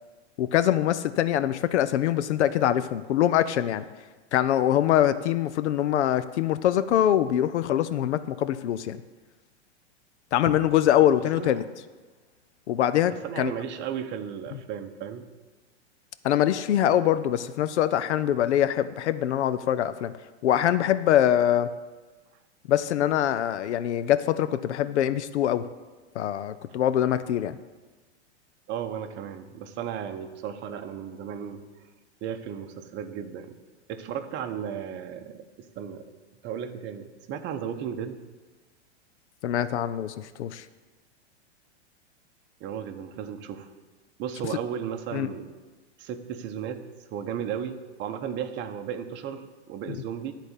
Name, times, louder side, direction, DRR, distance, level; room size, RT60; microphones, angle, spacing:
voice 1, 0.4-3.8 4.3-9.0 10.3-11.6 12.7-13.5 16.2-20.1 20.4-21.7 22.7-25.7 26.2-27.6 39.4-40.6 45.1-45.3 49.9-50.0, left 11 dB, 80° left, 13 dB, 0.6 m, -23 dB
voice 2, 11.0-11.6 13.1-15.3 28.7-31.6 32.2-33.6 33.9-36.1 36.4-38.2 42.6-43.7 44.2-45.5 46.0-46.8 47.1-50.3, right 8 dB, 35° right, 6 dB, 0.9 m, -35 dB
12.0 x 4.1 x 8.1 m, 1.3 s
hypercardioid pair, 125°, 34 cm